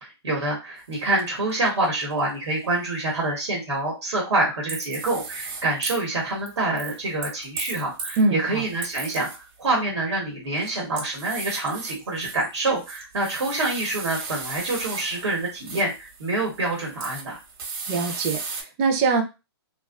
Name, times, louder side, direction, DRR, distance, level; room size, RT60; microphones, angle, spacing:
voice 1, 0.0-17.4, right 2 dB, 90° right, -1 dB, 1.1 m, -26 dB
sound 1, 0.9-1.0 1.2-2.2 4.7-6.0 6.5-8.2 8.6-9.6 10.4-18.6, right 4 dB, 50° right, 0.9 m, -36 dB
voice 2, 8.2-8.7 17.9-19.2, right 4 dB, 25° right, 4 dB, 0.4 m, -23 dB
2.6 x 2.3 x 2.3 m, 0.27 s
hypercardioid pair, 145°, 14 cm